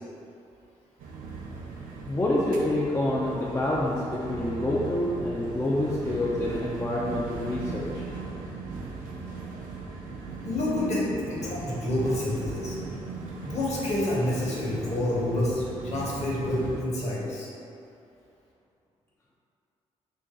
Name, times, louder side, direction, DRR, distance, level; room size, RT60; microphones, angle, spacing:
sound 1, 1.0-16.8, right 4 dB, 65° right, 0.5 m, -38 dB
voice 1, 2.1-8.0, left 1 dB, 20° left, -5 dB, 0.5 m, -27 dB
voice 2, 10.4-12.8 13.4-17.5, left 1 dB, 45° left, -5 dB, 1.1 m, -28 dB
2.9 x 2.6 x 3.5 m, 2.6 s
hypercardioid pair, 40°, 15 cm